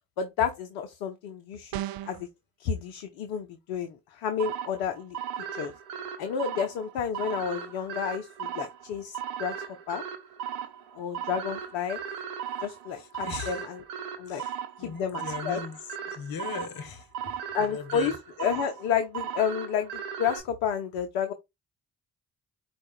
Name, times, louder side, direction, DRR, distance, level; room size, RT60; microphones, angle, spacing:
voice 1, 0.2-2.3 2.6-5.2 5.5-5.7 6.2-9.6 9.9-10.0 11.0-12.0 12.6-13.8 14.2-14.4 14.8-15.6 17.5-21.3, left 7 dB, 80° left, 0.7 m, -31 dB
sound 1, 1.7-2.3, right 13 dB, 55° right, 0.5 m, -34 dB
sound 2, 4.4-20.4, right 8 dB, 90° right, 0.7 m, -37 dB
voice 2, 13.0-13.6 14.3-15.8 16.1-17.3 17.6-18.1, left 6 dB, 55° left, 1.0 m, -39 dB
4.6 x 2.4 x 4.3 m
hypercardioid pair, 40°, 42 cm